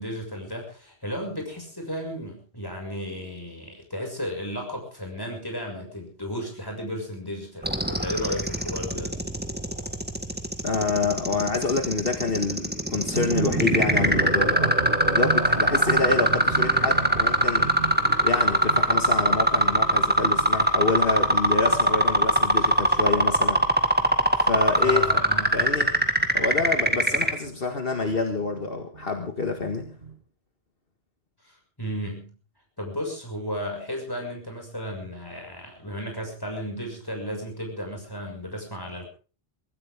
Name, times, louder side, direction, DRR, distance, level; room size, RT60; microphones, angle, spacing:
voice 1, 0.0-9.1 24.8-25.6 31.4-32.3 32.8-39.1, equal, 20° left, 1 dB, 6.3 m, -34 dB
sound 1, 7.6-27.3, right 1 dB, 10° right, 1.8 m, -21 dB
voice 2, 10.6-14.7 15.1-17.7 18.2-23.6 24.4-25.2 25.5-25.9 26.3-29.9, left 3 dB, 65° left, 4 dB, 2.1 m, -27 dB
sound 2, 13.1-30.2, right 5 dB, 60° right, 1.8 m, -36 dB
23.5 x 15.5 x 3.7 m, 0.36 s
omnidirectional pair, 1.0 m